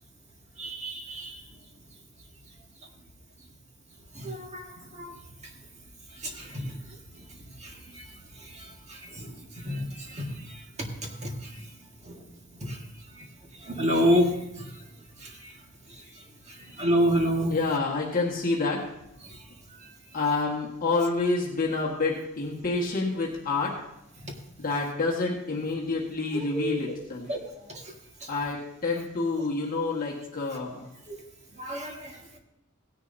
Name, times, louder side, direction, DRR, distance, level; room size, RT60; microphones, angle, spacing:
voice 1, 0.6-1.3 4.2-4.6 5.0-5.1 6.4-6.5 9.2-9.3 9.6-10.2 10.8-10.9 11.2-11.3 13.7-14.3 16.8-17.5 26.3-26.7 27.3-27.4 31.6-32.1, equal, 30° right, 1 dB, 1.7 m, -26 dB
voice 2, 17.5-18.8 20.1-23.8 24.6-27.3 28.3-30.9, left 3 dB, 40° left, -3 dB, 1.5 m, -28 dB
17.0 x 10.0 x 2.7 m, 0.82 s
head